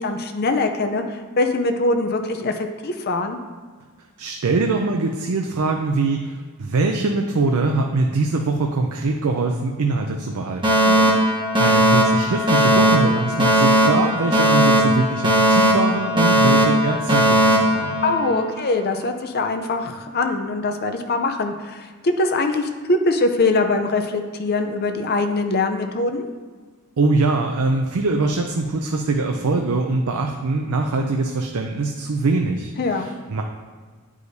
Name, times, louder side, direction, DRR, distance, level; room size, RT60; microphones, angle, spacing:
voice 1, 0.0-3.4 10.8-11.1 18.0-26.2 32.8-33.1, left 3 dB, 45° left, 6 dB, 0.5 m, -22 dB
voice 2, 4.2-10.8 11.6-18.0 27.0-33.4, right 3 dB, 80° right, 3 dB, 0.5 m, -23 dB
Alarm, 10.6-18.6, equal, 20° right, 1.0 m, -17 dB
9.6 x 4.9 x 2.7 m, 1.5 s
head